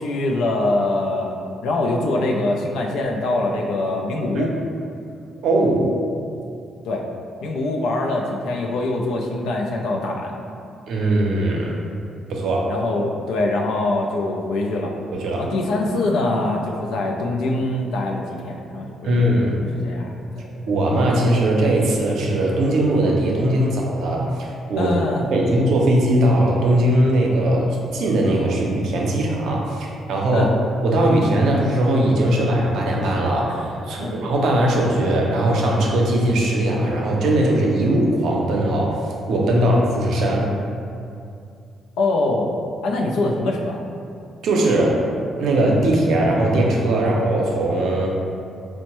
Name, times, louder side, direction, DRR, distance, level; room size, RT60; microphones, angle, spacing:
voice 1, 0.0-1.4 1.6-4.5 6.8-7.0 7.4-10.3 12.7-14.9 15.4-19.2 19.7-20.7 24.8-25.3 30.3-30.5 34.0-34.2 39.6-39.7 42.0-42.6 42.8-43.8 46.9-47.0, left 2 dB, 85° left, 0 dB, 0.4 m, -23 dB
voice 2, 5.4-5.9 10.9-11.8 12.3-12.7 15.1-15.5 19.0-19.6 20.7-24.9 25.3-30.5 30.8-39.0 39.3-40.5 44.4-45.0 45.4-48.1, right 1 dB, 75° right, -1 dB, 0.6 m, -19 dB
4.4 x 2.1 x 2.9 m, 2.5 s
cardioid pair, 90°, 0 cm